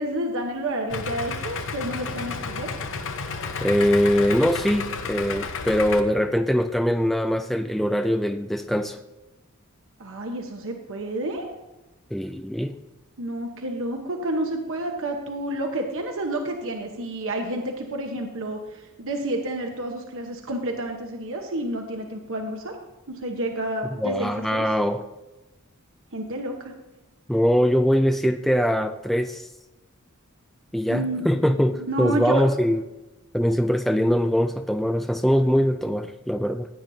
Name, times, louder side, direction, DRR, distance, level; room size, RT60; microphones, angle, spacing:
voice 1, 0.0-2.7 10.0-11.5 13.2-22.8 23.1-24.6 26.1-26.7 30.9-32.4, right 1 dB, 65° right, 3 dB, 1.0 m, -30 dB
Idling, 0.9-6.0, left 5 dB, 65° left, 0.9 m, -31 dB
voice 2, 3.6-9.0 12.1-12.8 24.0-25.0 27.3-29.5 30.7-32.8 33.3-36.7, equal, ahead, 7 dB, 0.3 m, -22 dB
15.5 x 9.0 x 2.7 m, 1.0 s
head